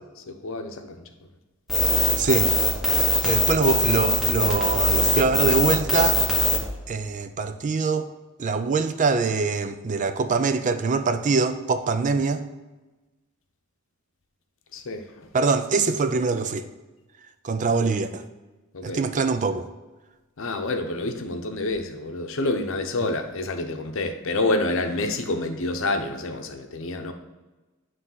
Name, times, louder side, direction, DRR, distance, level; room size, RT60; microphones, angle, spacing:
voice 1, 0.4-1.0 14.7-15.0 18.7-19.0 20.4-27.1, left 2 dB, 65° left, 0.7 m, -28 dB
sound 1, 1.7-6.6, left 2 dB, ahead, 1.3 m, -21 dB
voice 2, 2.2-2.6 3.2-6.2 6.9-8.1 8.4-12.4 15.3-16.7 17.4-18.2 18.8-19.7, right 4 dB, 35° right, 0.4 m, -23 dB
9.7 x 3.3 x 5.5 m
head